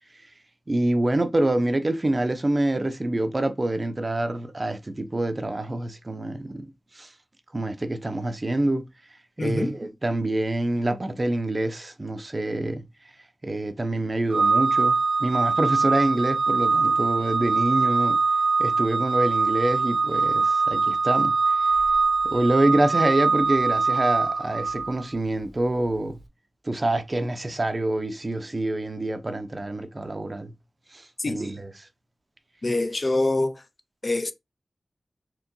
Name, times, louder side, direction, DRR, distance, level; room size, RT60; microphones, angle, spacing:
voice 1, 0.7-7.1 7.5-8.8 9.4-12.8 13.4-18.2 18.6-21.6 22.2-26.2 26.6-30.5 30.9-31.7, right 1 dB, 35° right, 0.6 m, -26 dB
voice 2, 9.4-9.7 31.2-31.4 32.6-33.6 34.0-34.3, left 2 dB, 45° left, 0.5 m, -25 dB
Organ, 14.3-25.1, right 4 dB, 65° right, 0.9 m, -23 dB
4.5 x 3.0 x 2.6 m
wide cardioid pair, 65°, 0 cm